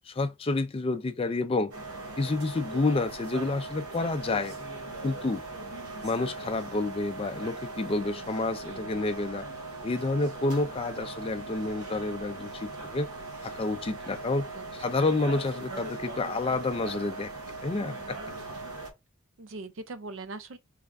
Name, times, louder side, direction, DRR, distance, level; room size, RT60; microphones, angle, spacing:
voice 1, 0.1-1.7 2.2-4.6 5.0-5.4 6.0-9.5 9.8-13.1 13.4-17.3 17.6-18.2, left 3 dB, 25° left, 0.3 m, -29 dB
sound 1, 1.7-18.9, right 2 dB, 90° right, 0.9 m, -39 dB
voice 2, 8.6-9.0 14.6-15.1 17.7-18.0 19.4-20.6, right 3 dB, 60° right, 0.5 m, -42 dB
3.3 x 2.5 x 3.4 m
head